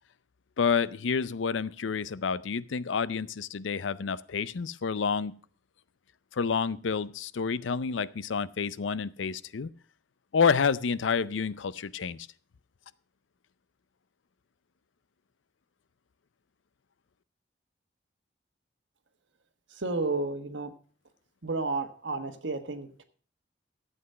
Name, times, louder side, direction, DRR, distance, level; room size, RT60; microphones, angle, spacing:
voice 1, 0.6-5.4 6.3-9.7 10.3-12.3, left 5 dB, 90° left, 18 dB, 0.5 m, -29 dB
voice 2, 19.7-20.7 21.4-23.0, right 3 dB, 75° right, 8 dB, 1.4 m, -32 dB
12.5 x 8.2 x 5.5 m, 0.42 s
head